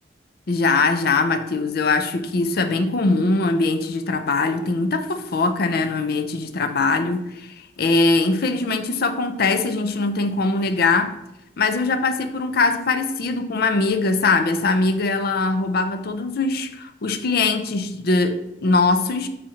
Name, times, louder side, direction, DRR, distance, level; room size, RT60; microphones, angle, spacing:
voice 1, 0.5-11.2 11.6-19.3, left 3 dB, 60° left, 0.5 m, -21 dB
6.3 x 4.2 x 4.3 m
head